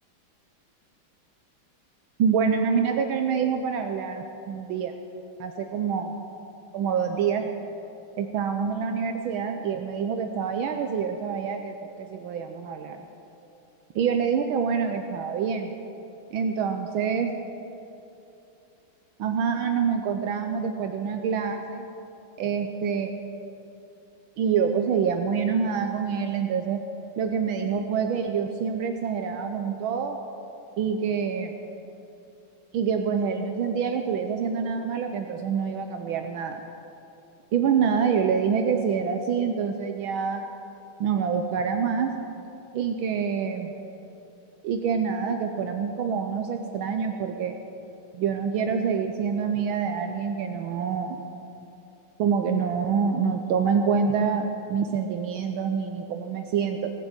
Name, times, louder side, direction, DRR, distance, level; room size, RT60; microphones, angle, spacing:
voice 1, 2.2-4.9 5.4-6.2 6.7-7.4 8.2-13.0 13.9-15.7 16.3-17.3 19.2-21.9 22.4-23.1 24.4-26.8 27.2-30.2 30.8-31.5 32.7-36.6 37.5-40.5 41.0-42.1 42.7-43.7 44.6-47.6 48.1-51.2 52.2-56.9, right 6 dB, 75° right, 5 dB, 1.5 m, -26 dB
17.5 x 8.1 x 8.0 m, 2.8 s
omnidirectional pair, 2.3 m